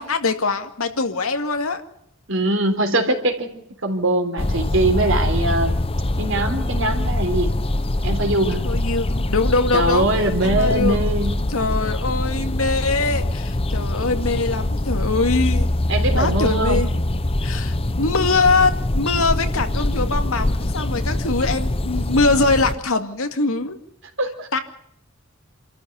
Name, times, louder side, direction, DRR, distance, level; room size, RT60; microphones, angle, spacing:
voice 1, 0.0-1.8 8.6-10.1 10.4-11.0 11.5-15.7 16.1-16.9 17.4-23.8 24.5-24.6, left 3 dB, 80° left, 7 dB, 2.3 m, -22 dB
voice 2, 2.3-3.5 3.8-5.8 6.2-7.5 8.0-8.6 9.7-11.4 15.9-16.8 24.2-24.5, right 1 dB, 65° right, 5 dB, 3.8 m, -22 dB
sound 1, 4.4-22.8, left 1 dB, 25° left, 0.8 m, -23 dB
27.5 x 14.0 x 8.3 m, 0.74 s
head